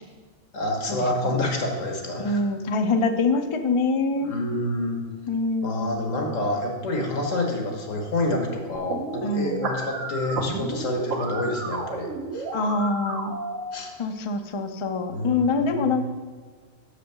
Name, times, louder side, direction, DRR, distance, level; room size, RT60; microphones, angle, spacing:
voice 1, 0.5-2.4 4.2-5.0 5.6-12.5 13.7-13.9 15.1-16.0, left 1 dB, 80° left, 2 dB, 1.7 m, -28 dB
voice 2, 2.2-4.3 5.3-6.0 9.2-9.7 12.5-13.3 14.0-16.1, left 3 dB, 50° left, 7 dB, 0.3 m, -25 dB
sound 1, 8.7-13.7, right 3 dB, 80° right, 1.4 m, -32 dB
6.4 x 5.0 x 6.7 m, 1.5 s
omnidirectional pair, 1.3 m